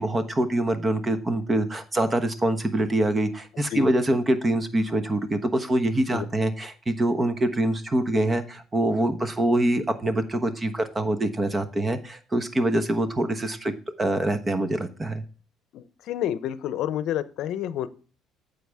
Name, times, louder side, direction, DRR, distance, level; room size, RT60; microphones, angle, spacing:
voice 1, 0.0-13.7 14.0-15.2, right 1 dB, 25° right, 10 dB, 1.2 m, -25 dB
voice 2, 15.7-17.9, left 11 dB, 70° left, 15 dB, 0.7 m, -29 dB
9.3 x 6.9 x 3.5 m, 0.39 s
supercardioid pair, 90°, 0 cm